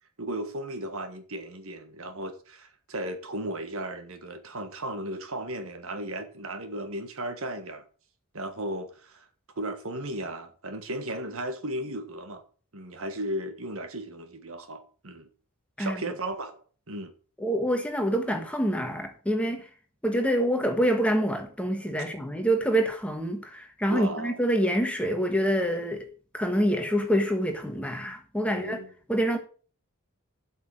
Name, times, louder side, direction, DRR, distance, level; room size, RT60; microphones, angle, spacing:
voice 1, 0.2-7.8 8.3-9.3 9.6-12.4 12.7-15.3 15.8-17.1 23.9-24.4 28.4-28.9, right 1 dB, 65° right, 1.6 m, -35 dB
voice 2, 17.4-19.7 20.0-26.1 26.3-28.8 29.1-29.4, equal, 5° left, 1.6 m, -26 dB
8.1 x 6.6 x 7.8 m
head